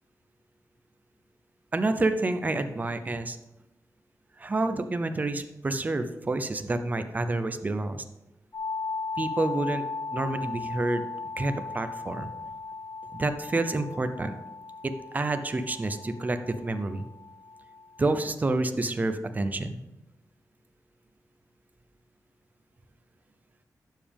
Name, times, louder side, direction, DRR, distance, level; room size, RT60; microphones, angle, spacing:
voice 1, 1.7-3.4 4.4-8.0 9.2-9.8 10.1-11.1 11.4-12.3 13.1-14.3 14.8-17.1 18.0-19.8, right 2 dB, 25° right, 9 dB, 0.7 m, -28 dB
sound 1, 8.5-18.3, left 4 dB, 45° left, 1.7 m, -37 dB
11.5 x 7.5 x 3.5 m, 0.94 s
wide cardioid pair, 160°, 6 cm